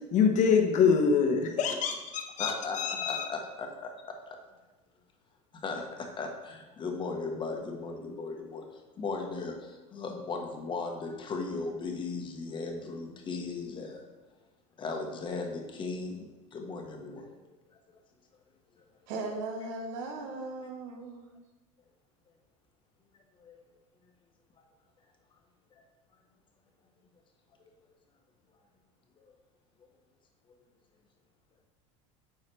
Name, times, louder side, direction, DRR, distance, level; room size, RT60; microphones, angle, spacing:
voice 1, 0.0-3.3, left 6 dB, 45° left, 4 dB, 1.1 m, -25 dB
voice 2, 2.4-4.4 5.5-14.0 14.8-17.3 17.7-17.8 23.4-23.6 25.8-25.9 29.2-29.3, left 4 dB, 30° left, 3 dB, 1.2 m, -37 dB
voice 3, 19.1-21.3, right 3 dB, 75° right, 3 dB, 1.4 m, -37 dB
9.1 x 4.7 x 3.3 m, 1.1 s
supercardioid pair, 120°, 17 cm